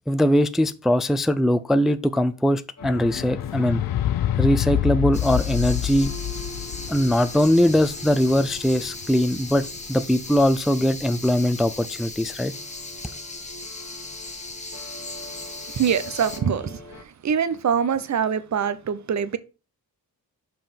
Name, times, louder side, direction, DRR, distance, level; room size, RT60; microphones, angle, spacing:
voice 1, 0.1-3.8 4.4-6.1 6.9-9.6 9.9-12.5, equal, ahead, 0.4 m, -21 dB
sound 1, 2.8-9.3 10.1-10.2, left 12 dB, 70° left, 0.5 m, -27 dB
sound 2, 2.8-17.0, left 1 dB, 45° left, 1.2 m, -44 dB
sound 3, 5.1-16.4, left 2 dB, 20° left, 1.3 m, -38 dB
voice 2, 15.7-16.8 17.2-19.4, right 7 dB, 50° right, 0.7 m, -24 dB
5.5 x 4.6 x 5.1 m
cardioid pair, 100°, 37 cm